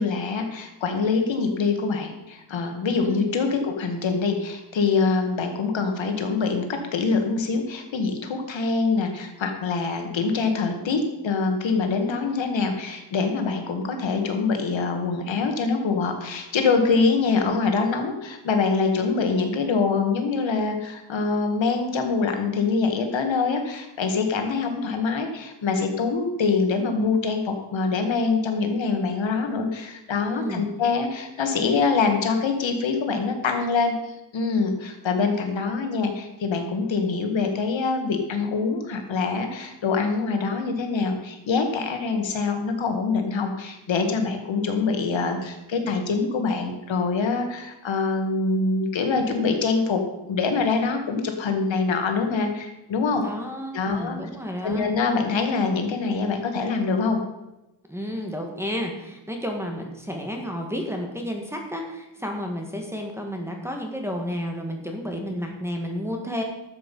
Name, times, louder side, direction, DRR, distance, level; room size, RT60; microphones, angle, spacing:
voice 1, 0.0-53.2 53.7-54.2 54.6-57.2, left 4 dB, 70° left, 4 dB, 1.9 m, -24 dB
voice 2, 30.3-30.6 53.2-54.9 57.9-66.4, equal, 5° right, 2 dB, 1.8 m, -31 dB
12.5 x 7.5 x 5.4 m, 0.95 s
wide cardioid pair, 145°, 48 cm